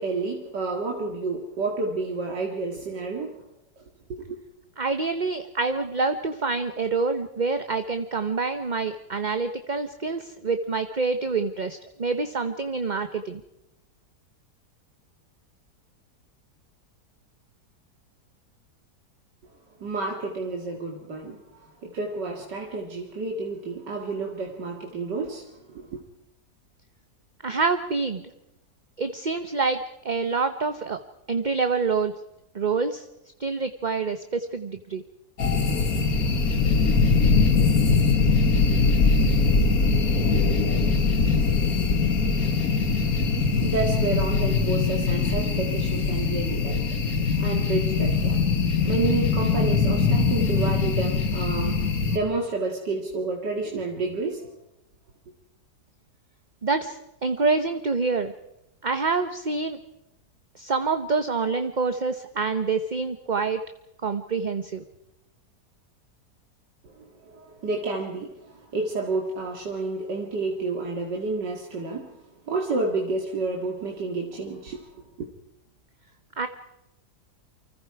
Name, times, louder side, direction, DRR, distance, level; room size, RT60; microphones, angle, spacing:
voice 1, 0.0-3.4 3.8-3.9 4.1-4.4 19.8-26.0 42.4-42.5 43.5-54.5 66.8-72.1 72.5-75.3, right 3 dB, 90° right, 1 dB, 2.8 m, -30 dB
voice 2, 4.8-13.4 27.4-28.2 29.0-31.0 31.3-32.1 32.5-33.1 33.4-35.0 56.6-58.3 58.8-59.8 60.5-63.6 64.0-64.8 76.4-76.5, right 4 dB, 30° right, 8 dB, 1.0 m, -26 dB
sound 1, 35.4-52.2, left 4 dB, 60° left, 2.2 m, -22 dB
29.5 x 25.0 x 4.8 m, 0.87 s
omnidirectional pair, 1.8 m